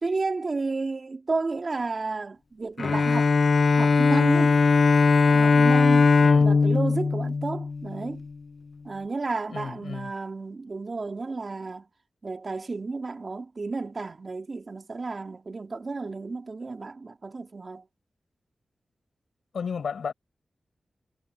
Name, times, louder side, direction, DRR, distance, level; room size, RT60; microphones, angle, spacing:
voice 1, 0.0-3.4 3.7-4.6 5.3-6.1 6.4-8.2 8.8-11.9 12.2-17.8, right 3 dB, 45° right, 2.5 m, -32 dB
Bowed string instrument, 2.8-8.2, left 4 dB, 60° left, 0.8 m, -20 dB
voice 2, 6.2-6.5 9.5-10.1 19.5-20.1, left 6 dB, 90° left, 5.3 m, -33 dB
wide cardioid pair, 80°, 0 cm